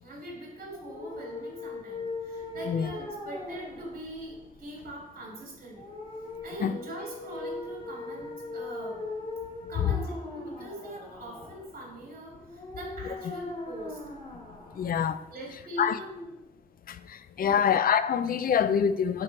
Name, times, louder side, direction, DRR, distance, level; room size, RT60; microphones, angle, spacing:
voice 1, 0.0-6.0 6.4-9.0 9.7-14.0 15.3-16.4 17.4-17.7, right 1 dB, 80° right, 2.9 m, -42 dB
sound 1, 0.7-15.6, left 3 dB, 40° left, 2.8 m, -40 dB
voice 2, 14.7-15.2 15.8-16.0 16.9-19.2, left 8 dB, 70° left, 0.5 m, -25 dB
9.9 x 4.5 x 4.5 m
wide cardioid pair, 125°, 15 cm